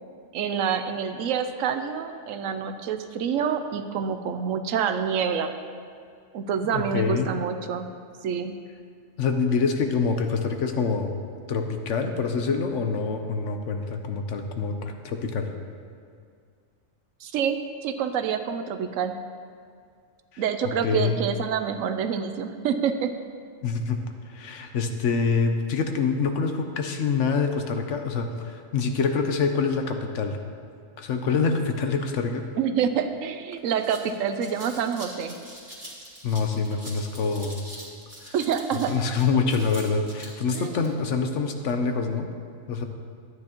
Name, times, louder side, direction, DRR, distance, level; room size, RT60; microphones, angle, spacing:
voice 1, 0.3-5.5 6.3-7.9 8.2-8.6 17.2-19.2 20.4-23.1 32.6-35.4 38.3-38.9 40.5-40.9, right 7 dB, 85° right, 8 dB, 1.0 m, -27 dB
voice 2, 6.7-7.3 9.2-11.1 11.5-15.5 20.3-20.4 20.8-21.2 23.6-24.0 24.3-30.4 31.0-32.4 36.2-37.6 38.3-38.4 38.9-42.3 42.7-42.8, left 5 dB, 70° left, 5 dB, 1.1 m, -26 dB
sound 1, 33.1-33.2 33.5-40.9, right 1 dB, 25° right, 1.9 m, -44 dB
12.0 x 9.4 x 3.0 m, 2.2 s
omnidirectional pair, 1.3 m